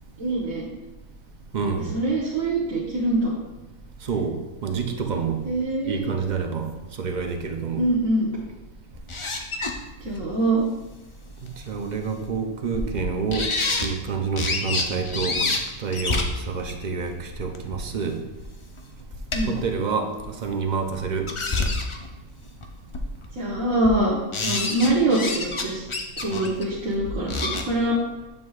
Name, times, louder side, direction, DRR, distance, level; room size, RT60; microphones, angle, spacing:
voice 1, 0.2-0.7 1.9-3.3 5.4-6.0 7.8-8.3 10.0-10.6 19.3-19.6 23.3-25.8 26.2-28.0, right 1 dB, 75° right, -7 dB, 1.6 m, -24 dB
voice 2, 1.5-1.9 4.0-5.4 5.9-6.7 7.0-7.9 11.7-13.5 13.8-15.5 15.8-18.2 19.5-21.3, right 5 dB, 45° right, 4 dB, 0.6 m, -28 dB
sound 1, 8.9-9.7 10.1-10.2 11.5-11.6 12.2-12.3 12.7-13.0 13.3-13.9 14.4-15.6 15.9-17.8 18.4-18.5 18.8-19.6 20.2-20.3 21.0-22.1 22.6-22.7 22.9-23.3 23.7-24.0 24.3-25.6 25.9-27.6, left 3 dB, 45° left, 0.4 m, -27 dB
7.7 x 7.2 x 2.4 m, 1.0 s
omnidirectional pair, 1.4 m